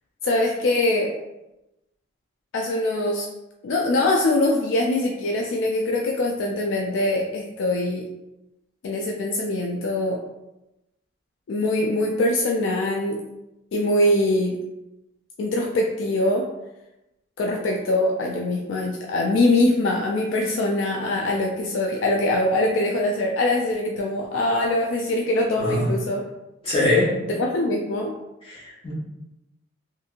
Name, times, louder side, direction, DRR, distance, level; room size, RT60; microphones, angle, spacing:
voice 1, 0.2-1.1 2.5-3.3 3.6-8.0 8.8-10.2 11.5-13.2 13.7-14.6 15.4-16.4 17.4-26.2 27.4-28.1, left 1 dB, 70° left, 1 dB, 0.3 m, -23 dB
voice 2, 25.6-25.9 26.6-27.3 28.4-28.9, left 2 dB, 25° left, -10 dB, 1.2 m, -23 dB
2.7 x 2.6 x 2.5 m, 0.94 s
head